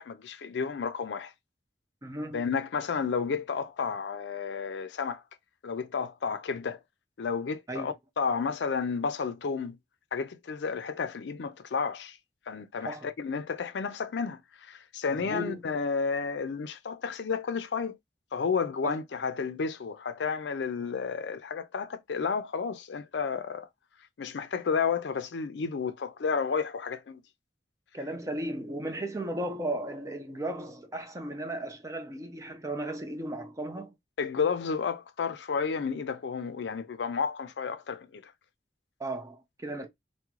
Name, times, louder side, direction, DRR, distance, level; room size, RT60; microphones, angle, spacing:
voice 1, 0.0-1.3 2.3-5.2 5.6-6.8 7.2-9.8 10.1-12.2 12.5-18.0 18.3-23.7 24.2-27.2 34.2-38.3, left 5 dB, 80° left, 0.4 m, -31 dB
voice 2, 2.0-2.4 7.7-7.9 12.8-13.1 15.1-15.6 18.8-18.9 27.9-33.9 39.0-39.9, right 1 dB, 20° right, 0.6 m, -35 dB
3.6 x 2.1 x 3.0 m
head